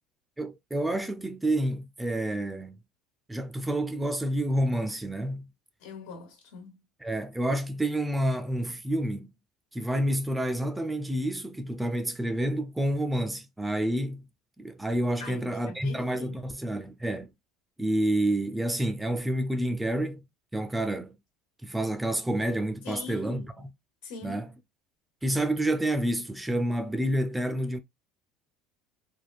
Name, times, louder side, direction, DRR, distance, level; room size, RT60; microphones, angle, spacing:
voice 1, 0.4-2.8 3.3-5.5 7.0-9.3 9.7-14.2 14.6-17.3 17.8-20.2 20.5-21.2 21.6-23.4 24.2-24.5 25.2-27.8, right 1 dB, 10° right, 0.5 m, -29 dB
voice 2, 5.8-6.8 15.2-16.5 22.8-23.6 24.0-24.5, left 4 dB, 80° left, 1.3 m, -42 dB
3.4 x 2.1 x 2.4 m
supercardioid pair, 110°, 0 cm